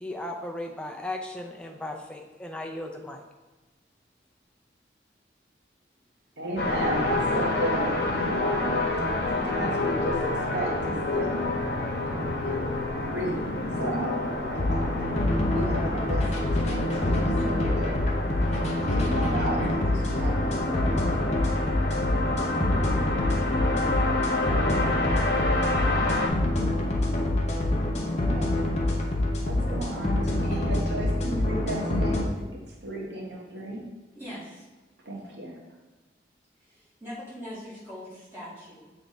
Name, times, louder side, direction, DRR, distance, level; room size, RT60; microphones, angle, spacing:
voice 1, 0.0-3.2, left 1 dB, 5° left, 1 dB, 0.5 m, -36 dB
voice 2, 6.4-8.7 9.3-11.4 12.0-18.0 18.9-20.7 28.0-28.6 29.4-33.9 35.0-35.6, right 1 dB, 80° right, -2 dB, 1.3 m, -34 dB
sound 1, 6.6-26.3, left 2 dB, 65° left, 0.9 m, -28 dB
sound 2, 14.6-32.2, left 1 dB, 40° left, 0.7 m, -26 dB
voice 3, 34.1-34.6 36.6-38.9, equal, 15° right, -10 dB, 2.2 m, -41 dB
7.7 x 3.4 x 4.0 m, 1.1 s
head